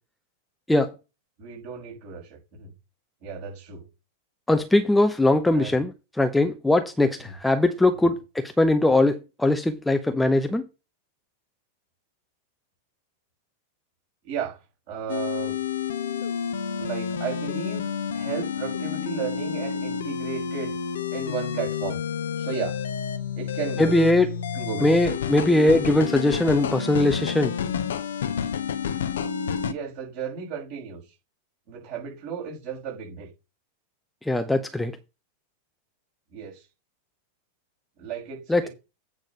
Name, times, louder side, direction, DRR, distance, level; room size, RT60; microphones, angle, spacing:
voice 1, 1.4-2.7 3.2-3.9 5.5-5.8 7.2-7.3 7.9-8.1 14.2-14.6 14.9-15.6 16.8-17.9 18.1-20.7 21.1-22.0 22.4-22.8 23.4-24.0 24.5-25.0 29.6-31.1 31.7-33.3 36.3-36.7 38.0-38.7, right 7 dB, 50° right, 6.3 m, -34 dB
voice 2, 4.5-5.9 6.2-10.7 23.8-24.3 24.8-27.5 34.2-34.9 38.5-38.7, left 2 dB, 5° left, 0.8 m, -21 dB
sound 1, 15.1-29.7, left 7 dB, 65° left, 0.8 m, -29 dB
9.0 x 4.8 x 5.6 m
figure-of-eight pair, 90°, 0 cm